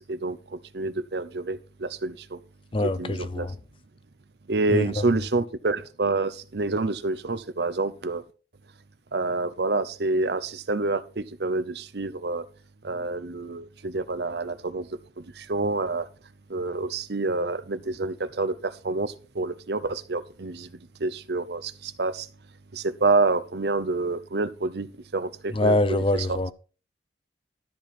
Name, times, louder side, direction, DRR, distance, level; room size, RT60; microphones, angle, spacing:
voice 1, 0.7-2.4 3.0-3.5 4.5-8.2 9.1-12.5 12.8-14.9 15.4-16.1 16.5-20.7 21.0-22.3 22.7-24.9 25.1-26.0, right 3 dB, 60° right, 0.8 m, -27 dB
voice 2, 2.7-3.6 4.7-5.1 25.5-26.5, left 1 dB, 30° left, 0.5 m, -24 dB
13.0 x 4.5 x 6.0 m
head